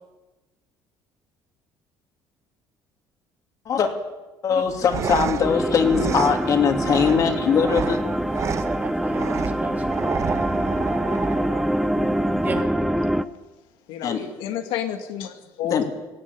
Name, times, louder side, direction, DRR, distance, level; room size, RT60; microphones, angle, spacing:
voice 1, 4.4-8.0 14.0-14.3 15.6-15.8, left 6 dB, 45° left, 4 dB, 2.8 m, -21 dB
sound 1, 4.6-12.6, right 7 dB, 40° right, 1.0 m, -31 dB
sound 2, 5.4-13.2, equal, ahead, 0.7 m, -25 dB
voice 2, 8.0-10.1 12.4-12.7, right 3 dB, 20° right, 3 dB, 2.7 m, -34 dB
voice 3, 13.9-15.8, left 10 dB, 90° left, 6 dB, 2.2 m, -30 dB
16.5 x 16.0 x 9.9 m, 1.1 s
cardioid pair, 140°, 8 cm